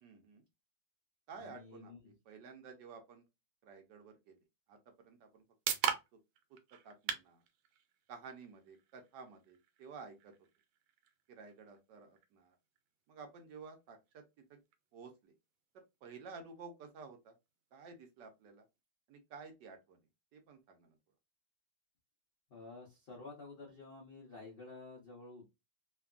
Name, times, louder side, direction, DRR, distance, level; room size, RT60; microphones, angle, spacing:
voice 1, 0.0-0.4 1.3-3.3 3.6-4.4 4.7-5.4 5.9-6.2 6.5-7.4 8.1-10.3 11.3-12.6 13.1-14.2 14.5-14.6 14.9-15.3 15.7-17.3 17.7-18.6 19.1-20.0 20.3-21.0, right 5 dB, 70° right, 1.2 m, -53 dB
voice 2, 1.4-2.0 22.5-25.5, left 3 dB, 65° left, 0.5 m, -51 dB
sound 1, 4.9-18.8, right 8 dB, 85° right, 1.4 m, -46 dB
3.3 x 2.2 x 2.3 m
omnidirectional pair, 2.1 m